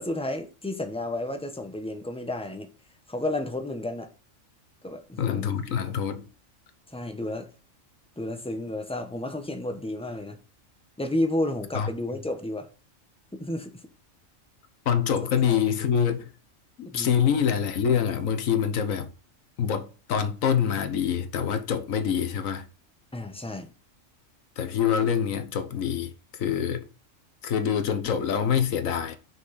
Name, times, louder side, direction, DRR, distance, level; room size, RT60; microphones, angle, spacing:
voice 1, 0.0-2.7 3.1-4.1 4.8-5.6 6.9-7.5 8.2-10.4 11.0-12.7 13.3-13.7 15.5-15.7 16.9-17.4 23.1-23.7, left 1 dB, 5° left, 0.8 m, -31 dB
voice 2, 5.2-6.3 11.7-11.9 14.8-16.3 16.8-19.1 19.6-22.7 24.6-26.8 27.4-29.2, left 8 dB, 90° left, 1.4 m, -25 dB
6.2 x 5.9 x 4.0 m
omnidirectional pair, 1.3 m